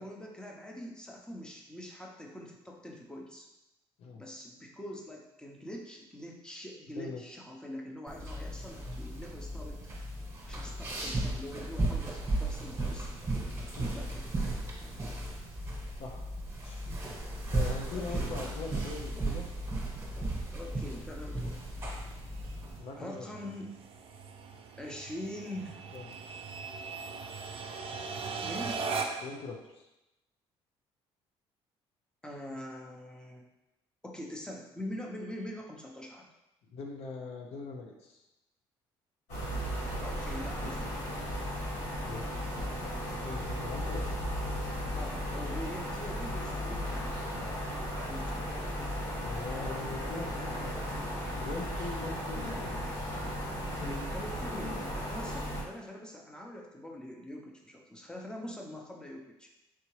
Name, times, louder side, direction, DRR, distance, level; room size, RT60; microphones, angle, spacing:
voice 1, 0.0-3.5 4.2-9.8 10.4-13.1 13.9-14.3 17.9-18.3 20.5-21.6 23.0-23.7 24.8-25.8 28.4-28.8 32.2-33.5 34.0-36.3 40.0-41.2 45.0-47.2 48.1-48.5 53.9-59.5, left 1 dB, 5° left, 0 dB, 0.7 m, -44 dB
sound 1, 8.1-22.8, right 2 dB, 25° right, 1.2 m, -35 dB
voice 2, 16.6-17.0 17.5-19.5 22.8-23.5 25.9-26.1 29.2-29.9 36.7-38.2 42.0-42.2 43.2-44.3 49.2-50.9 51.4-52.9, left 3 dB, 65° left, 1 dB, 0.6 m, -41 dB
sound 2, 19.2-29.4, right 4 dB, 55° right, 0.5 m, -41 dB
sound 3, 39.3-55.6, equal, 80° left, 1.4 m, -35 dB
4.5 x 2.8 x 3.1 m, 0.95 s
cardioid pair, 95°, 11 cm